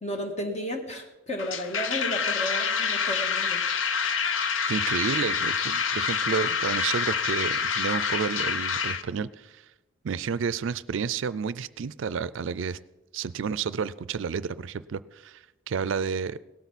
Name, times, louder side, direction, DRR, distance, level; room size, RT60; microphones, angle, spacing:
voice 1, 0.0-3.6, equal, 35° left, 4 dB, 1.7 m, -33 dB
sound 1, 1.4-9.0, left 6 dB, 75° left, 0.7 m, -27 dB
voice 2, 4.7-9.6 10.0-12.8 13.1-16.4, right 6 dB, 75° right, 17 dB, 0.4 m, -31 dB
18.0 x 12.5 x 4.1 m, 1.0 s
head